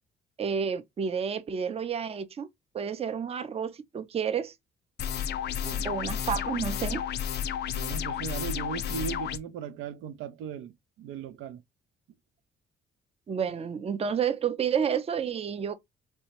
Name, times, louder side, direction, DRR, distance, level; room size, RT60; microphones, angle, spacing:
voice 1, 0.4-2.5 2.7-4.5 5.8-7.1 13.3-15.7, right 7 dB, 30° right, 0.4 m, -30 dB
sound 1, 5.0-9.4, left 9 dB, 60° left, 0.4 m, -32 dB
voice 2, 5.6-5.9 7.7-11.6, right 7 dB, 85° right, 0.5 m, -38 dB
3.2 x 2.7 x 2.9 m
cardioid pair, 90°, 20 cm